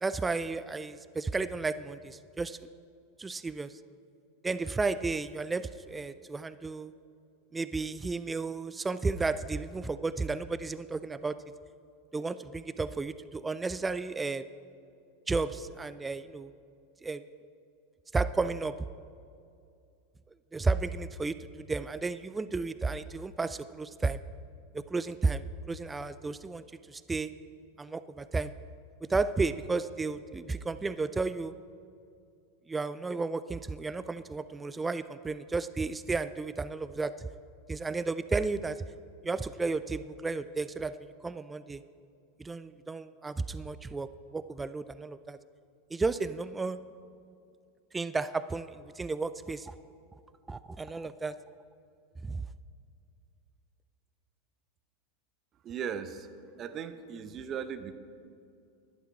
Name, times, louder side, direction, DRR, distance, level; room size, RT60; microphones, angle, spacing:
voice 1, 0.0-2.7 3.2-3.8 4.4-6.9 7.5-11.4 12.1-14.4 15.3-16.5 17.0-17.2 18.1-18.8 20.5-24.2 24.7-27.3 27.8-28.5 29.1-31.5 32.7-37.3 37.7-38.8 39.2-41.8 42.4-45.4 45.9-46.8 47.9-49.8 50.5-51.4 52.2-52.5, right 3 dB, 15° right, 14 dB, 0.3 m, -33 dB
voice 2, 55.6-56.3 56.6-57.9, right 7 dB, 35° right, 11 dB, 0.8 m, -37 dB
11.5 x 11.0 x 4.7 m, 2.4 s
hypercardioid pair, 90°, 0 cm